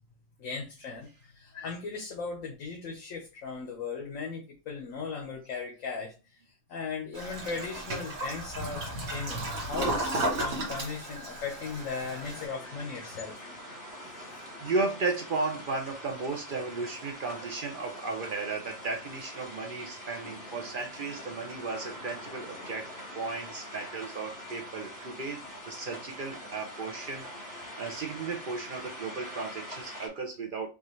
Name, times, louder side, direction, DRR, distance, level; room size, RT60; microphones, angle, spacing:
voice 1, 0.4-13.5 14.1-14.4, left 4 dB, 75° left, 1.2 m, -38 dB
Toilet flush, 7.1-12.5, right 1 dB, 80° right, 1.6 m, -34 dB
sound 1, 10.6-30.1, equal, 15° left, 1.3 m, -44 dB
voice 2, 14.6-22.9 23.1-25.4 25.7-27.3 27.8-30.7, right 3 dB, 55° right, 0.6 m, -34 dB
5.2 x 2.4 x 3.1 m
omnidirectional pair, 1.4 m